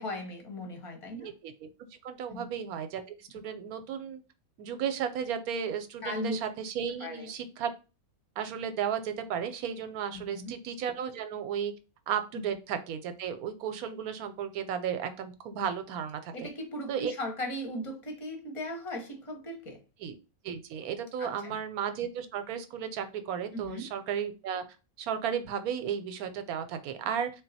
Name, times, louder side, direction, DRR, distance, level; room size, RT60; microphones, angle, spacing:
voice 1, 0.0-1.3 2.3-2.5 6.0-6.4 7.0-7.3 10.1-10.5 12.3-12.5 16.3-19.8 21.2-21.6 23.5-23.9, left 1 dB, 30° left, 3 dB, 0.7 m, -37 dB
voice 2, 1.2-1.7 2.0-4.2 4.6-7.7 8.4-11.7 12.1-16.3 16.9-17.1 20.0-20.1 20.4-24.6 25.0-27.3, right 8 dB, 85° right, 9 dB, 1.1 m, -34 dB
3.9 x 2.2 x 4.0 m, 0.31 s
omnidirectional pair, 1.5 m